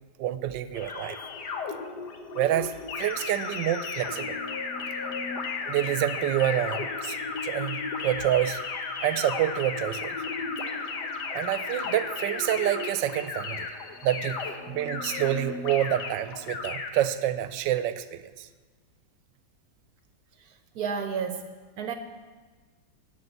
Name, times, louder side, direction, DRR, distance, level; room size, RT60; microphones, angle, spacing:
voice 1, 0.2-1.2 2.3-2.7 3.0-4.4 5.7-7.2 7.4-8.6 9.0-10.2 11.0-13.7 14.0-18.5, right 12 dB, 85° right, 13 dB, 1.3 m, -28 dB
sound 1, 0.7-16.6, left 4 dB, 65° left, 1.5 m, -38 dB
sound 2, 2.9-12.9 13.3-13.7 14.1-14.5 14.9-15.3 15.7-16.1 16.5-16.9, left 5 dB, 90° left, 1.8 m, -35 dB
voice 2, 20.4-21.9, right 6 dB, 65° right, 8 dB, 1.1 m, -33 dB
13.0 x 5.6 x 7.9 m, 1.4 s
omnidirectional pair, 1.9 m